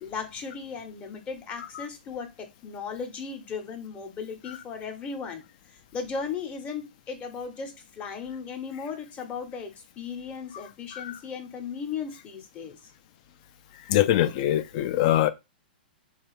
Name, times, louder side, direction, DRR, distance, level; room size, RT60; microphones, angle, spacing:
voice 1, 0.0-5.4 5.7-12.8, left 5 dB, 25° left, 0.7 m, -36 dB
voice 2, 13.9-15.3, left 13 dB, 45° left, 0.3 m, -23 dB
3.3 x 2.3 x 3.1 m
hypercardioid pair, 115°, 5 cm